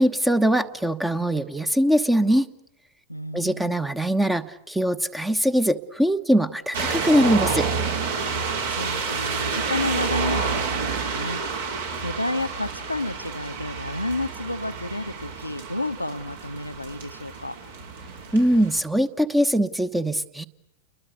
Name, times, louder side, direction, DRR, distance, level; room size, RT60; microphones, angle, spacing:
voice 1, 0.0-2.5 3.3-7.7 18.3-20.4, equal, 5° right, 12 dB, 1.1 m, -22 dB
voice 2, 3.1-3.8 8.3-17.6, left 1 dB, 85° left, 9 dB, 1.0 m, -31 dB
sound 1, 6.7-18.8, right 5 dB, 65° right, 4.8 m, -29 dB
29.5 x 22.5 x 8.1 m, 0.81 s
figure-of-eight pair, 90°, 0 cm